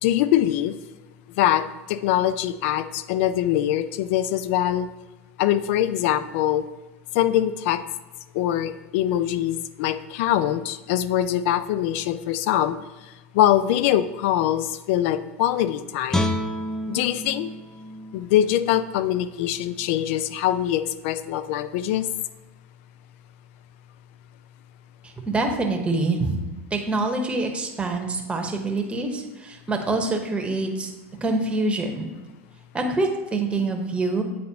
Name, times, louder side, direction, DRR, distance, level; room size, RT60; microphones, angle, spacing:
voice 1, 0.0-0.7 1.4-4.9 5.4-6.6 7.1-7.8 8.3-12.8 13.3-16.3 16.9-17.5 18.1-22.1, left 12 dB, 65° left, 13 dB, 0.4 m, -23 dB
Guitar, 16.1-19.3 19.7-19.8, left 1 dB, 5° left, 0.4 m, -30 dB
voice 2, 25.3-26.4 26.7-30.9 31.2-32.1 32.7-34.2, right 2 dB, 15° right, 2 dB, 1.0 m, -25 dB
8.4 x 3.9 x 2.8 m, 1.2 s
hypercardioid pair, 105°, 7 cm